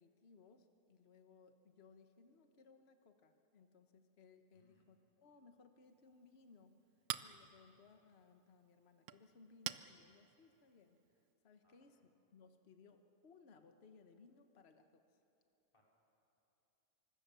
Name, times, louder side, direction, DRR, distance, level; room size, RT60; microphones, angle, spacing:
voice 1, 0.0-6.8 7.2-15.2, left 4 dB, 45° left, 7 dB, 1.4 m, -65 dB
voice 2, 4.5-4.9 11.6-12.1 15.7-15.8, equal, 20° left, -3 dB, 4.4 m, -76 dB
Chink clink, 5.8-11.3, right 11 dB, 75° right, 1.2 m, -51 dB
26.5 x 25.0 x 6.9 m, 2.8 s
omnidirectional pair, 1.6 m